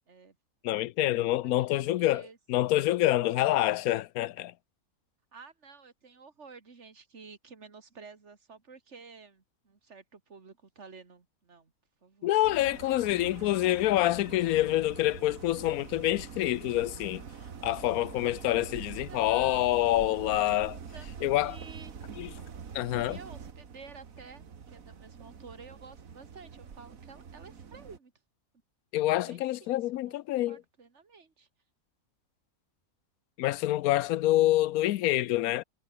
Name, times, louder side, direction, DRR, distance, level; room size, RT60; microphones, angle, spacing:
voice 1, 0.6-2.2 2.5-4.5 12.2-17.2 17.6-20.8 21.2-21.6 22.2-22.3 22.7-23.2 28.9-30.6 33.4-35.6, left 15 dB, 90° left, 1.1 m, -27 dB
voice 2, 1.4-2.7 5.3-11.7 12.0-12.4 13.4-13.7 19.1-19.8 20.9-22.0 22.9-24.4 24.7-28.1 29.2-30.2 30.5-31.5, right 4 dB, 55° right, 2.6 m, -51 dB
sound 1, 12.4-28.0, right 6 dB, 75° right, 2.0 m, -45 dB
omnidirectional pair, 1.5 m